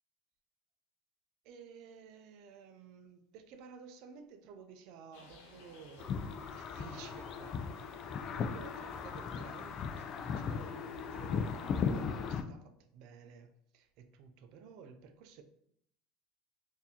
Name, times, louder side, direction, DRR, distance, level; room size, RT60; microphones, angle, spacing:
voice 1, 1.4-7.6 8.3-15.4, right 5 dB, 65° right, 0.4 m, -53 dB
sound 1, 5.1-12.0, left 3 dB, 85° left, 0.6 m, -58 dB
sound 2, 6.0-12.4, left 6 dB, 45° left, 0.3 m, -37 dB
4.1 x 2.6 x 2.8 m
supercardioid pair, 115°, 0 cm